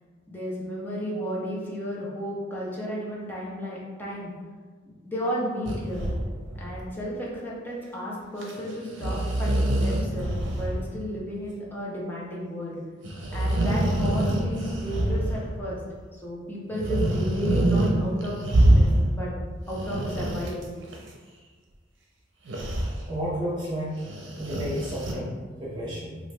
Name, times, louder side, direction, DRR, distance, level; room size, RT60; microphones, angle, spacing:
voice 1, 0.3-4.3 4.8-6.1 6.6-12.8 13.3-15.8 16.2-19.3 19.7-20.7, equal, 10° left, -6 dB, 0.7 m, -33 dB
sound 1, 5.7-6.8 8.4-8.6 8.9-10.8 11.1-11.2 13.0-15.6 16.7-17.9 18.2-19.2 19.6-20.9 22.5-22.9 24.0-25.1, right 1 dB, 75° right, 0.6 m, -25 dB
voice 2, 23.1-24.1 24.4-26.2, equal, 25° right, -7 dB, 0.5 m, -32 dB
3.0 x 2.4 x 3.2 m, 1.4 s
head